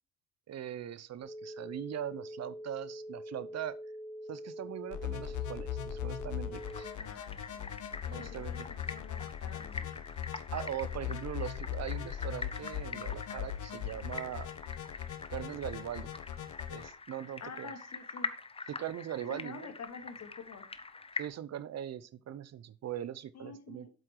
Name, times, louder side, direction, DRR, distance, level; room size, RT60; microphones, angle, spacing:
voice 1, 0.5-3.8 4.3-6.9 8.1-8.6 10.5-14.5 15.3-16.1 16.7-17.7 18.7-19.7 21.2-23.9, right 11 dB, 60° right, 0.8 m, -41 dB
sound 1, 1.2-6.9, equal, 85° right, 3.3 m, -44 dB
sound 2, 4.9-16.9, left 10 dB, 75° left, 1.2 m, -40 dB
sound 3, 6.5-21.3, left 4 dB, 20° left, 0.9 m, -44 dB
voice 2, 7.0-10.1 17.4-18.3 19.3-20.7 23.3-23.9, left 5 dB, 60° left, 2.2 m, -49 dB
7.9 x 7.7 x 4.6 m
cardioid pair, 90°, 30 cm